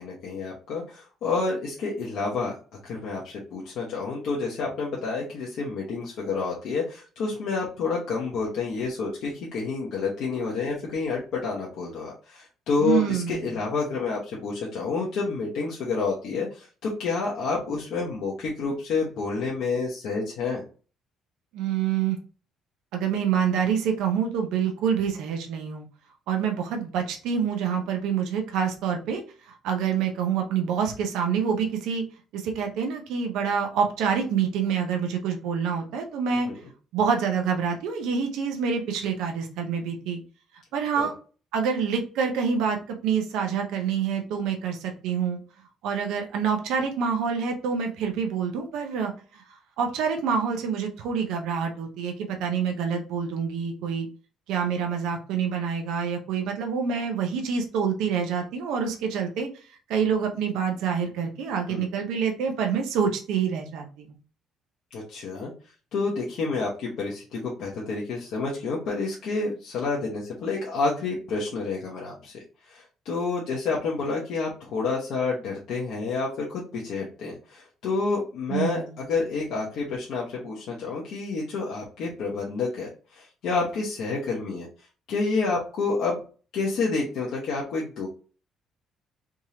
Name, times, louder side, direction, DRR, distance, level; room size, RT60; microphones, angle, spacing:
voice 1, 0.0-2.5 2.8-20.6 36.5-36.6 41.0-41.1 61.7-61.9 64.9-65.5 65.9-72.3 72.7-84.7 85.1-86.2 86.5-88.1, left 4 dB, 55° left, -4 dB, 1.0 m, -29 dB
voice 2, 12.8-13.5 21.5-22.2 22.9-25.9 26.3-29.2 29.5-32.0 32.3-36.5 36.9-40.2 40.7-41.1 41.5-45.4 45.8-54.1 54.5-59.5 59.9-64.2 78.5-78.9, right 7 dB, 80° right, 3 dB, 0.7 m, -27 dB
3.6 x 3.0 x 2.8 m, 0.38 s
cardioid pair, 175°, 0 cm